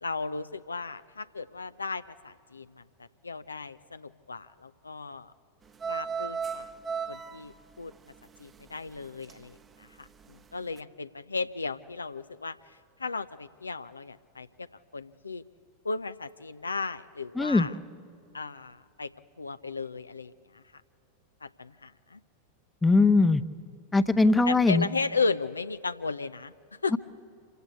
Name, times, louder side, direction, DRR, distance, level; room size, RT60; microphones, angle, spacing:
voice 1, 0.0-5.3 5.9-6.7 7.1-7.9 8.4-14.7 14.9-15.4 15.8-17.8 18.3-19.1 19.4-20.6 21.4-22.2 24.5-26.5 26.8-27.0, left 4 dB, 80° left, 13 dB, 0.5 m, -35 dB
sound 1, 5.7-9.6 9.9-10.4 10.8-10.9, right 6 dB, 20° right, 0.9 m, -36 dB
voice 2, 17.4-17.7 22.8-23.4 23.9-24.9, left 3 dB, 10° left, 12 dB, 0.8 m, -21 dB
26.0 x 16.0 x 8.1 m, 2.5 s
figure-of-eight pair, 90°, 0 cm